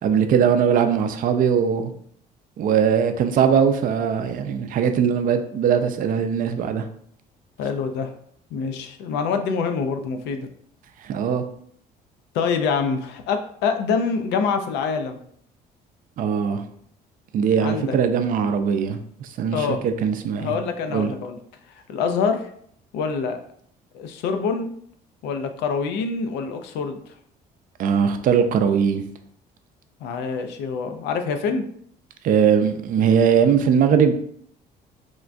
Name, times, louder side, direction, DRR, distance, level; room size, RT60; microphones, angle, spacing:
voice 1, 0.0-1.9 2.6-6.9 11.0-11.4 16.2-16.6 17.3-20.6 20.9-21.1 27.8-29.0 32.2-34.1, right 7 dB, 55° right, 8 dB, 0.4 m, -20 dB
voice 2, 7.6-8.1 8.5-10.5 12.3-15.2 17.6-18.0 19.5-19.8 20.4-21.4 21.9-22.5 22.9-23.4 23.9-24.7 25.2-27.0 30.0-31.6, left 5 dB, 85° left, 7 dB, 0.4 m, -25 dB
3.6 x 2.2 x 2.5 m, 0.64 s
cardioid pair, 110°, 17 cm